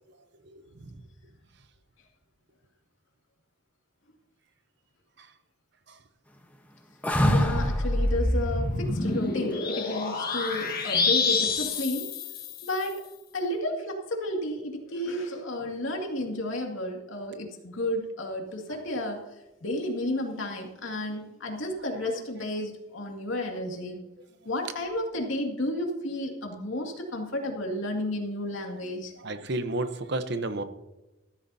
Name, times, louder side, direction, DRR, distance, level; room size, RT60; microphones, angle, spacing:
sound 1, 7.0-8.0 10.6-11.2, equal, 10° left, 1.0 m, -24 dB
sound 2, 7.1-12.9, left 3 dB, 50° left, 1.6 m, -28 dB
voice 1, 7.2-12.1 12.6-13.0 13.3-19.2 19.6-24.0 24.4-29.1, left 1 dB, 80° left, 1 dB, 2.3 m, -32 dB
voice 2, 29.2-30.6, right 2 dB, 60° right, 10 dB, 0.9 m, -30 dB
14.0 x 13.0 x 2.8 m, 1.0 s
head